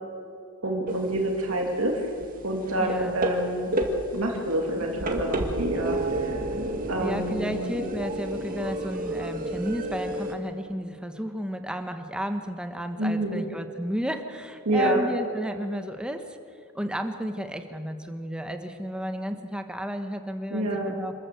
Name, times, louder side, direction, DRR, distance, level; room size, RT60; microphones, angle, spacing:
voice 1, 0.6-2.1 2.4-3.7 4.1-6.4 6.9-7.7 13.0-13.4 14.6-15.0 20.5-20.9, right 1 dB, 65° right, 1 dB, 2.6 m, -27 dB
sound 1, 0.9-1.3 1.6-10.3, right 1 dB, 40° right, 2.2 m, -31 dB
voice 2, 2.8-3.1 7.0-16.4 16.7-21.1, equal, 5° right, 7 dB, 1.1 m, -32 dB
27.0 x 13.5 x 7.9 m, 2.6 s
head